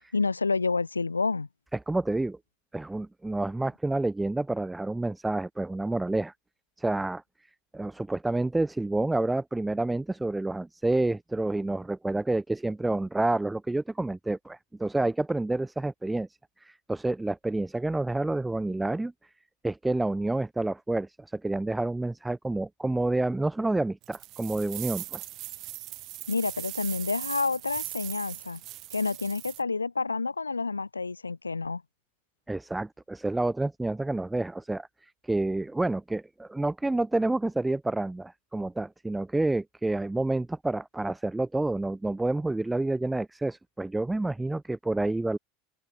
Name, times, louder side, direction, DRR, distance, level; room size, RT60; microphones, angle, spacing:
voice 1, 0.1-1.5 26.3-28.6 28.9-31.8, left 4 dB, 90° left, 1.1 m, -29 dB
voice 2, 1.9-2.4 2.7-6.3 6.8-7.2 7.7-16.3 16.6-19.1 19.6-25.2 32.5-45.4, right 2 dB, 10° right, 0.6 m, -29 dB
sound 1, 24.0-29.6, right 18 dB, 50° right, 2.2 m, -39 dB
open air
figure-of-eight pair, 80°, 0 cm